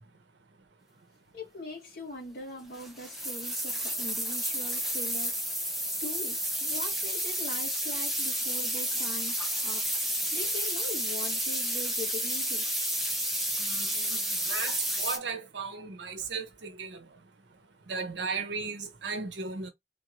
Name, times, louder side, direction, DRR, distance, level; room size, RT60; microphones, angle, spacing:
voice 1, 1.3-5.5 6.0-9.4 9.6-12.7 13.1-13.2, left 1 dB, 50° left, 1.4 m, -42 dB
sound 1, 2.7-15.2, equal, ahead, 0.6 m, -31 dB
voice 2, 13.6-17.0 17.9-19.7, right 4 dB, 75° right, 0.9 m, -36 dB
3.7 x 2.6 x 3.0 m
head